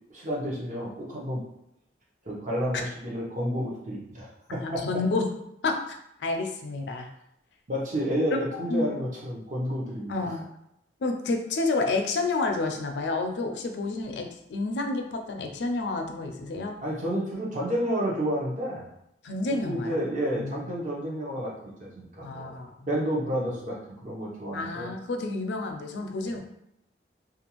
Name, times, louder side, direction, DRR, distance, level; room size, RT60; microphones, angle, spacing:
voice 1, 0.1-1.4 2.2-4.9 7.7-10.4 16.8-18.9 19.4-22.5 22.9-24.9 26.2-26.4, equal, 45° right, -4 dB, 0.8 m, -30 dB
voice 2, 4.5-5.2 5.6-7.1 8.7-8.9 10.1-10.4 11.0-16.7 19.2-20.0 20.3-20.5 22.2-22.7 24.5-26.4, left 3 dB, 70° left, 3 dB, 0.4 m, -30 dB
2.5 x 2.3 x 2.9 m, 0.79 s
head